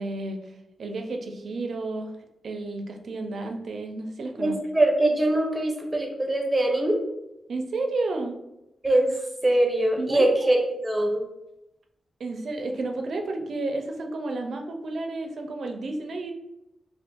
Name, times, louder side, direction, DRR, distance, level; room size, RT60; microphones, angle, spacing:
voice 1, 0.0-2.1 2.4-4.6 7.5-8.4 10.0-10.3 12.2-16.3, right 2 dB, 60° right, 3 dB, 0.4 m, -31 dB
voice 2, 4.4-7.0 8.8-9.1 9.4-10.6 10.8-11.2, right 1 dB, 10° right, 1 dB, 0.6 m, -22 dB
2.5 x 2.4 x 3.7 m, 0.89 s
wide cardioid pair, 135°, 0 cm